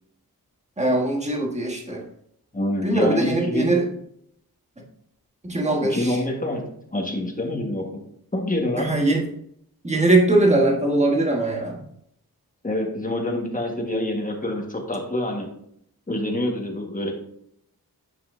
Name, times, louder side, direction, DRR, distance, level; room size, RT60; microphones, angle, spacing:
voice 1, 0.8-2.0 2.8-3.9 5.4-6.2 8.8-9.3 9.8-11.8, right 2 dB, 20° right, 0 dB, 1.3 m, -21 dB
voice 2, 2.5-3.7 5.9-6.6 6.9-8.0 8.3-8.9 12.6-15.5 16.1-17.1, left 1 dB, 20° left, 1 dB, 1.4 m, -26 dB
7.8 x 5.4 x 2.6 m, 0.71 s
wide cardioid pair, 95°, 38 cm